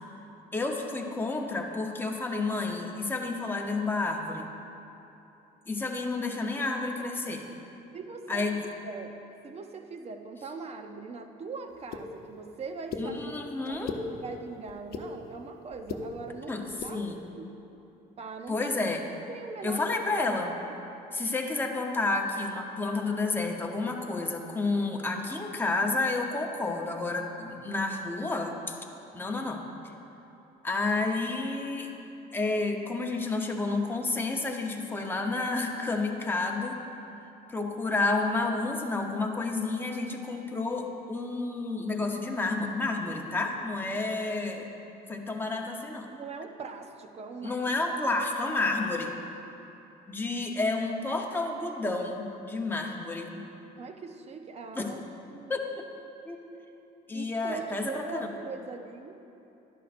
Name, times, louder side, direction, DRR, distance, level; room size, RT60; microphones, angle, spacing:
voice 1, 0.5-4.5 5.7-7.5 8.3-8.6 13.0-13.9 16.5-17.2 18.5-19.0 19.6-20.5 21.1-28.8 29.1-29.6 30.6-31.9 32.3-36.8 37.5-44.7 45.1-46.1 47.4-49.1 50.1-53.4 54.7-54.9 55.5-55.8 56.3-56.4 57.1-58.3, left 3 dB, 10° left, 1 dB, 0.9 m, -30 dB
voice 2, 7.9-8.5 8.8-9.1 9.4-13.2 13.7-13.8 14.1-16.5 16.8-17.5 18.2-18.7 19.1-19.9 20.2-20.4 46.1-47.6 53.8-55.0 55.3-55.5 57.1-59.2, right 4 dB, 40° right, 6 dB, 0.7 m, -41 dB
sound 1, 11.9-12.0 12.9-13.0 13.7-14.0 14.7-15.1 15.7-16.0 16.7-16.9, left 5 dB, 70° left, 0.8 m, -35 dB
11.5 x 10.5 x 2.6 m, 2.9 s
cardioid pair, 110°, 17 cm